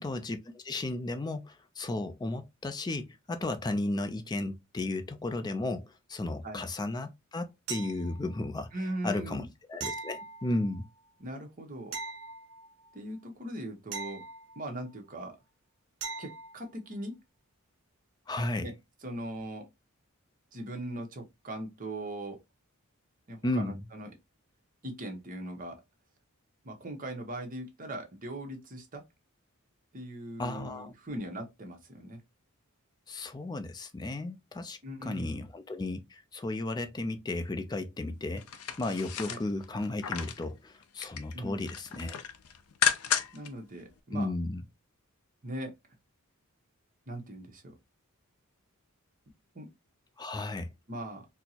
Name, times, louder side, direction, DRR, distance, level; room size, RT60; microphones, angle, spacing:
voice 1, 0.0-8.7 9.0-10.8 18.3-18.7 23.4-23.8 30.4-30.9 33.1-38.5 38.8-42.2 44.1-44.6 50.2-50.7, left 2 dB, 20° left, 0.4 m, -34 dB
sound 1, 7.7-8.4 9.8-10.9 11.9-12.9 13.9-14.9 16.0-16.6 19.4-19.5, right 4 dB, 80° right, 0.6 m, -41 dB
voice 2, 8.7-9.5 11.2-11.9 12.9-14.2 14.6-15.4 16.2-17.2 18.6-18.7 19.0-19.6 20.5-22.4 23.3-24.1 24.8-25.8 26.6-29.0 29.9-32.2 34.8-35.5 39.2-39.4 41.3-41.6 43.3-44.3 45.4-45.7 47.1-47.7 49.5-49.7 50.9-51.3, right 1 dB, 40° right, 0.9 m, -40 dB
sound 2, 38.4-40.4 40.8-41.3 41.6-43.5 43.9-44.0, left 8 dB, 90° left, 0.5 m, -32 dB
4.3 x 2.0 x 2.7 m
head